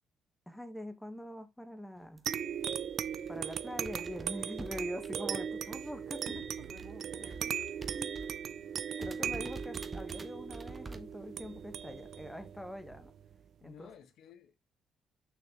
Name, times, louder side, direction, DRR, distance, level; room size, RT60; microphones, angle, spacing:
voice 1, 0.5-2.2 3.3-7.5 7.9-8.1 9.0-13.1 13.6-13.9, equal, 5° left, 1.5 m, -44 dB
sound 1, 2.2-2.4 2.9-3.0 3.2-5.6 5.8-8.5 8.7-8.8 9.0-11.0, right 3 dB, 30° right, 1.3 m, -47 dB
sound 2, 2.3-13.3, right 8 dB, 65° right, 0.5 m, -38 dB
voice 2, 9.6-10.0 13.6-14.6, left 8 dB, 75° left, 1.5 m, -56 dB
6.8 x 6.1 x 3.1 m
cardioid pair, 90°, 0 cm